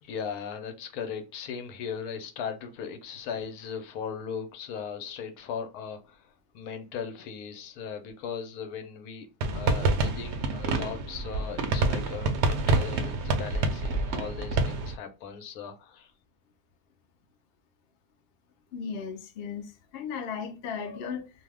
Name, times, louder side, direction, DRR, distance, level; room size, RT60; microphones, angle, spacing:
voice 1, 0.0-9.3 9.5-16.1, left 7 dB, 90° left, 1.1 m, -38 dB
sound 1, 9.4-14.9, right 3 dB, 65° right, 0.7 m, -27 dB
voice 2, 18.7-21.3, left 6 dB, 70° left, 0.5 m, -36 dB
2.6 x 2.1 x 3.3 m
omnidirectional pair, 1.6 m